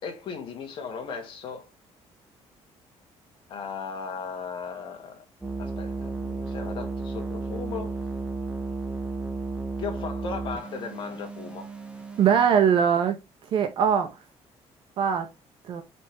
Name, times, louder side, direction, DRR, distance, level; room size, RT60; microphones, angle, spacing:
voice 1, 0.0-1.7 3.5-5.3 5.6-8.0 9.8-11.7, left 5 dB, 50° left, 2.1 m, -36 dB
sound 1, 5.4-12.5, right 3 dB, 10° right, 1.1 m, -33 dB
voice 2, 12.2-13.2 13.5-14.1 15.0-15.3 15.7-15.8, right 8 dB, 50° right, 1.7 m, -21 dB
7.4 x 4.5 x 3.3 m
cardioid pair, 180°, 11 cm